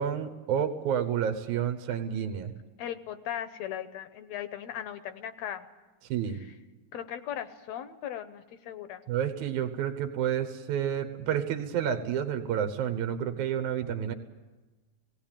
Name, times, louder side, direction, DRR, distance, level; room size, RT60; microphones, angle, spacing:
voice 1, 0.0-2.5 6.1-6.4 9.1-14.1, right 9 dB, 80° right, 8 dB, 2.5 m, -30 dB
voice 2, 2.8-5.7 6.3-6.6 6.9-9.0, left 10 dB, 70° left, 11 dB, 1.9 m, -38 dB
18.0 x 17.5 x 9.0 m, 1.2 s
omnidirectional pair, 3.4 m